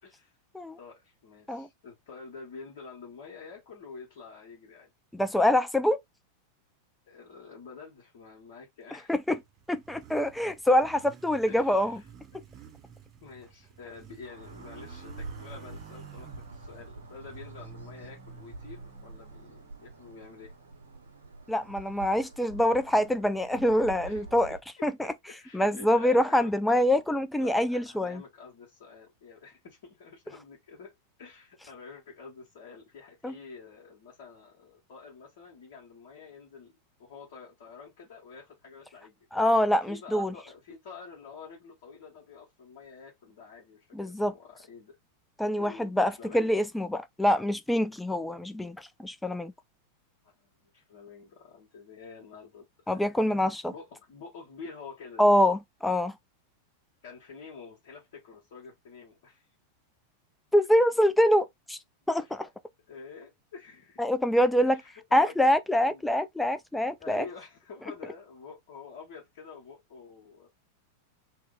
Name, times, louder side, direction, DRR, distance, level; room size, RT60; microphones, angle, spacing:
voice 1, 0.0-0.4 0.8-4.9 7.1-9.1 11.5-12.1 12.3-12.7 13.2-20.5 24.0-26.8 27.4-36.7 37.0-39.1 39.8-45.0 45.5-46.7 48.3-48.4 50.2-53.0 53.7-55.2 57.0-59.5 62.2-62.3 62.9-64.0 64.6-65.5 65.7-66.1 67.0-70.5, left 5 dB, 55° left, 1.1 m, -48 dB
voice 2, 5.1-6.0 9.1-9.4 9.7-12.0 21.5-24.6 24.8-24.9 25.5-28.2 33.2-33.3 39.3-40.3 43.9-44.3 45.4-49.5 52.9-53.7 55.2-56.1 60.5-61.8 62.1-62.5 64.0-64.8 65.1-67.2, left 1 dB, 5° left, 0.4 m, -25 dB
Motorcycle, 9.0-21.7, right 8 dB, 25° right, 0.8 m, -52 dB
sound 1, 14.2-24.6, right 3 dB, 75° right, 0.6 m, -46 dB
2.7 x 2.1 x 3.7 m
figure-of-eight pair, 90°, 0 cm